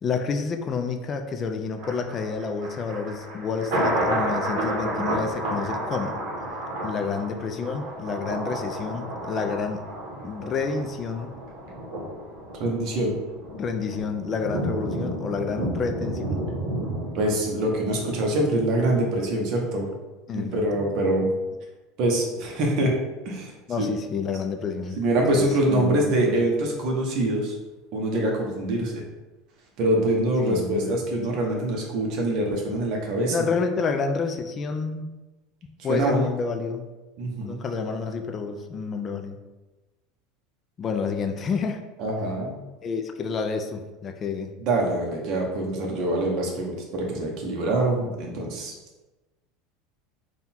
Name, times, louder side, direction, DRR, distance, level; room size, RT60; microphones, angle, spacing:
voice 1, 0.0-6.2 6.8-9.8 10.2-11.3 13.5-16.5 20.3-20.9 23.7-25.0 25.3-26.3 30.4-31.0 33.3-35.1 35.8-36.9 37.4-39.4 40.8-41.8 42.8-44.5, left 5 dB, 25° left, 6 dB, 0.3 m, -29 dB
Thunder, 1.8-18.9 19.3-19.4, right 1 dB, 60° right, 1.0 m, -31 dB
voice 2, 12.5-13.1 17.1-19.9 20.3-21.3 22.0-22.9 23.2-23.9 25.0-27.5 27.9-29.0 29.8-33.5 35.9-36.2 37.2-37.6 42.0-42.6 44.6-48.7, right 1 dB, 40° right, 0 dB, 0.9 m, -24 dB
3.7 x 2.3 x 4.2 m, 1.1 s
supercardioid pair, 165°, 0 cm